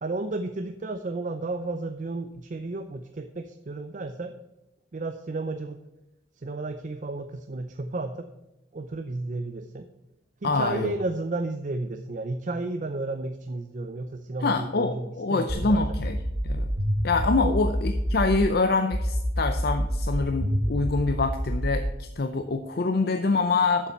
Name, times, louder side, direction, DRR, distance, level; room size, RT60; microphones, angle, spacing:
voice 1, 0.0-4.4 4.9-5.8 6.4-8.3 8.7-9.9 10.4-15.8 17.4-17.5, right 2 dB, 45° right, 8 dB, 0.5 m, -32 dB
voice 2, 10.4-10.9 14.4-16.2 16.4-16.7 17.0-23.9, left 3 dB, 60° left, 7 dB, 0.6 m, -25 dB
sound 1, 15.5-18.5 18.9-21.9, equal, 75° right, 1.7 m, -27 dB
7.2 x 6.9 x 7.1 m, 0.97 s
head